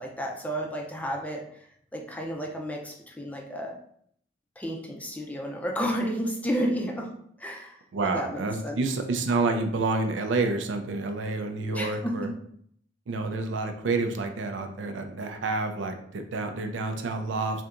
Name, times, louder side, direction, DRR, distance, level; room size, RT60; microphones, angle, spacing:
voice 1, 0.0-1.4 1.9-3.7 4.6-7.1 7.4-7.7 8.0-8.8 11.7-12.1, equal, 10° left, 0 dB, 0.4 m, -31 dB
voice 2, 7.9-12.3 13.1-17.6, right 3 dB, 85° right, 6 dB, 0.4 m, -29 dB
3.3 x 2.8 x 2.4 m, 0.66 s
head